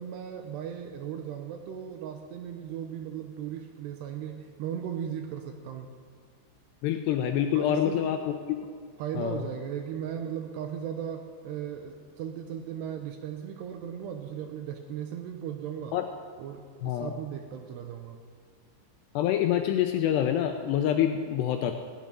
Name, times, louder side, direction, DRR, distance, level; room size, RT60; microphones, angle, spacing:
voice 1, 0.0-5.9 7.6-8.1 9.0-16.0 16.4-18.2, right 9 dB, 80° right, 5 dB, 2.6 m, -37 dB
voice 2, 6.8-8.3 9.2-9.4 15.9-16.1 16.8-17.1 19.2-21.8, left 10 dB, 85° left, 5 dB, 2.5 m, -26 dB
16.0 x 7.5 x 9.7 m, 2.1 s
omnidirectional pair, 5.5 m